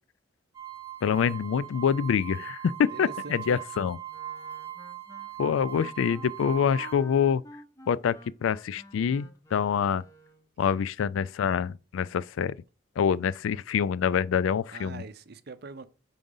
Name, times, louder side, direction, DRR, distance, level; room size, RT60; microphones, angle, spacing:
sound 1, 0.5-6.9, right 11 dB, 15° right, 1.0 m, -40 dB
voice 1, 1.0-4.0 5.4-7.4 7.9-10.0 10.6-12.6 13.0-15.0, left 7 dB, 80° left, 0.3 m, -26 dB
voice 2, 2.9-3.9 10.6-10.7 14.7-15.9, right 3 dB, 55° right, 0.6 m, -43 dB
Wind instrument woodwind instrument, 4.1-10.5, left 1 dB, 15° left, 0.6 m, -51 dB
4.9 x 3.9 x 5.4 m
head